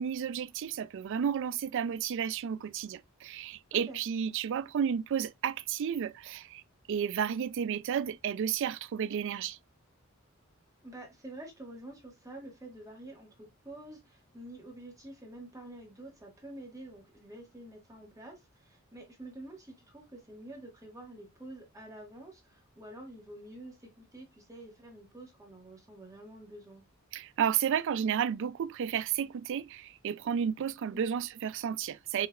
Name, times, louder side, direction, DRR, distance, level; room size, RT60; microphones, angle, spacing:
voice 1, 0.0-6.6 6.9-9.6 27.1-32.3, right 8 dB, 60° right, 0.3 m, -32 dB
voice 2, 10.8-26.8 30.9-31.1, right 1 dB, 15° right, 1.3 m, -48 dB
5.8 x 3.1 x 2.2 m
head